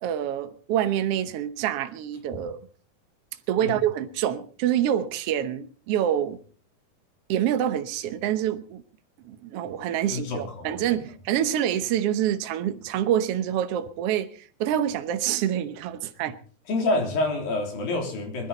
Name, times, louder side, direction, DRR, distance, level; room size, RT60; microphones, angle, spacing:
voice 1, 0.0-2.6 3.5-6.4 7.3-8.8 9.2-14.3 14.6-16.4, right 10 dB, 85° right, 1.3 m, -26 dB
voice 2, 10.1-10.9 16.7-18.5, left 2 dB, 70° left, 5.1 m, -27 dB
21.0 x 13.0 x 4.0 m
omnidirectional pair, 4.2 m